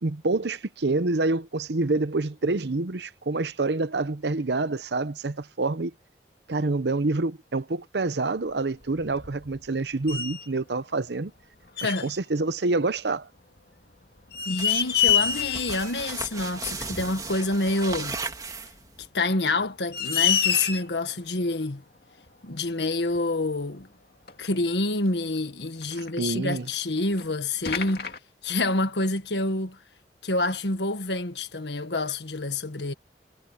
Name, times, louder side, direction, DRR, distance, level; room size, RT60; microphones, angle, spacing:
voice 1, 0.0-5.9 6.5-11.3 11.8-13.3 26.2-26.7, right 3 dB, 75° right, 0.8 m, -27 dB
sound 1, 8.8-9.7 10.1-10.5 11.8-12.2 13.6-13.7 14.2-15.9 16.3-16.4 17.9-18.0 19.0-19.1 19.6-19.7 19.9-21.0 22.3-22.4 23.1-23.2 23.5-23.6 24.3-24.5 25.8-26.7 27.2-27.3 27.6-28.2, left 9 dB, 60° left, 2.3 m, -26 dB
voice 2, 11.8-12.1 14.4-18.2 19.1-21.8 22.4-23.9 24.4-28.1 28.4-29.8 30.2-32.9, left 2 dB, 80° left, 1.6 m, -27 dB
sound 2, 14.6-19.1, right 4 dB, 20° right, 2.5 m, -36 dB
head